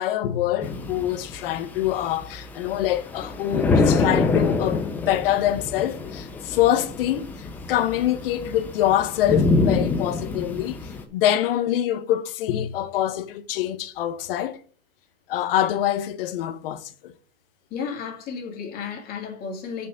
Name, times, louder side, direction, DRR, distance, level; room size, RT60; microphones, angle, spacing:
voice 1, 0.0-10.8 11.1-14.6 15.3-17.1, left 12 dB, 50° left, 1.0 m, -25 dB
sound 1, 0.6-11.0, left 3 dB, 5° left, 0.4 m, -26 dB
voice 2, 17.7-19.9, left 6 dB, 25° left, 2.3 m, -33 dB
6.5 x 5.6 x 6.4 m
supercardioid pair, 155°, 36 cm